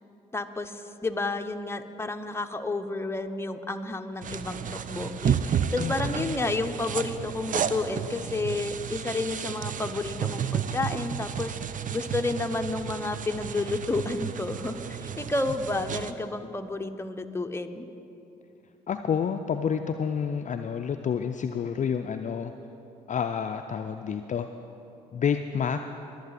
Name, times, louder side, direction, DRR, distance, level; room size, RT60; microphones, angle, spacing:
voice 1, 0.3-11.6 11.9-17.9, left 2 dB, 15° left, 6 dB, 0.9 m, -31 dB
sound 1, 4.2-16.1, right 8 dB, 45° right, 0.6 m, -32 dB
voice 2, 5.8-6.4 18.9-22.5 23.1-24.5 25.1-25.8, left 7 dB, 40° left, 7 dB, 0.5 m, -29 dB
23.0 x 7.8 x 4.1 m, 2.8 s
hypercardioid pair, 45°, 19 cm